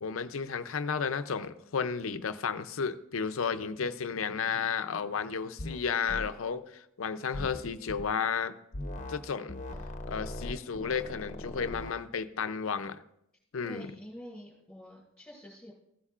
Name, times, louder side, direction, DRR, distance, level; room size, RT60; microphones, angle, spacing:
voice 1, 0.0-8.5 9.1-9.6 10.1-13.0 13.5-13.9, left 6 dB, 70° left, 11 dB, 0.6 m, -33 dB
sound 1, 5.6-5.8 6.1-6.3 7.3-8.1 8.7-9.2 9.5-12.0, left 1 dB, 35° left, 0.9 m, -39 dB
voice 2, 13.6-15.7, equal, 5° left, -9 dB, 4.8 m, -47 dB
16.0 x 9.8 x 2.4 m, 0.77 s
head